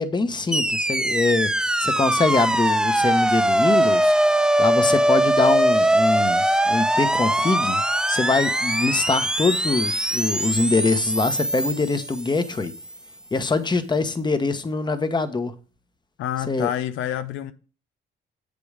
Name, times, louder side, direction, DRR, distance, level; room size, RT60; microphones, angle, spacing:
voice 1, 0.0-7.8 8.1-12.7 13.3-15.6 16.5-16.7, left 3 dB, 20° left, 1.0 m, -24 dB
sound 1, 0.5-12.8, right 1 dB, 5° right, 0.3 m, -21 dB
voice 2, 16.2-17.5, left 11 dB, 90° left, 0.6 m, -27 dB
7.8 x 5.3 x 4.9 m
cardioid pair, 90°, 20 cm